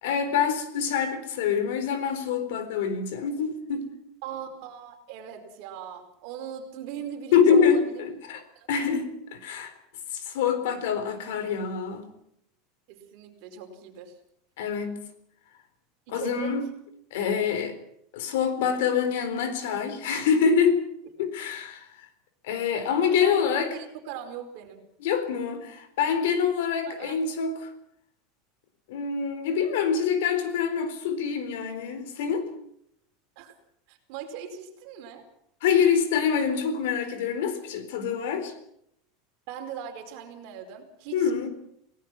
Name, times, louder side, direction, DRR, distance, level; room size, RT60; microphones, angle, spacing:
voice 1, 0.0-3.9 7.3-8.4 8.7-9.7 10.2-12.1 14.6-15.0 16.1-16.7 17.1-17.8 18.1-20.8 21.2-21.9 22.4-23.7 25.0-27.7 28.9-32.5 35.6-38.5 41.1-41.5, left 7 dB, 70° left, 4.0 m, -25 dB
voice 2, 4.2-8.1 8.5-8.7 10.6-11.2 12.9-14.2 16.1-16.5 23.2-24.8 26.9-27.2 33.4-33.5 33.9-35.2 39.5-41.5, right 8 dB, 50° right, 4.8 m, -40 dB
28.5 x 18.0 x 6.1 m
supercardioid pair, 170°, 0 cm